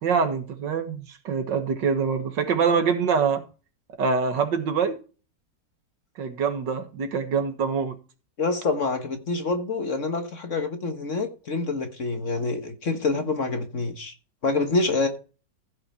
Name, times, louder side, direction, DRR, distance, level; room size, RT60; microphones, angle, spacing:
voice 1, 0.0-3.4 4.0-5.0 6.2-8.0, right 6 dB, 70° right, 2.0 m, -24 dB
voice 2, 8.4-14.1 14.4-15.1, left 3 dB, 45° left, 1.5 m, -26 dB
15.0 x 5.7 x 4.3 m
omnidirectional pair, 2.0 m